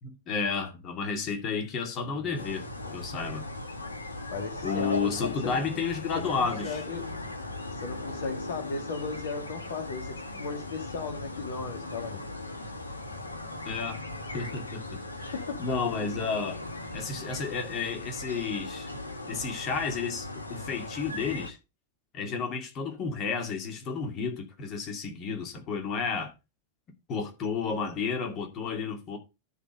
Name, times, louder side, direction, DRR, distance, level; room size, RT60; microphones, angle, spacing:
voice 1, 0.0-3.4 4.6-6.8 13.6-14.0 14.3-15.3 15.6-16.6 16.9-18.9 19.3-21.6 22.1-26.3 27.1-29.2, left 5 dB, 35° left, 2.3 m, -32 dB
voice 2, 2.0-2.5 2.8-3.0 4.3-5.8 6.2-7.0 7.7-12.2 15.3-15.6, left 4 dB, 55° left, 1.9 m, -37 dB
sound 1, 2.3-21.5, left 2 dB, 80° left, 1.4 m, -38 dB
12.5 x 4.3 x 5.3 m
figure-of-eight pair, 90°, 0 cm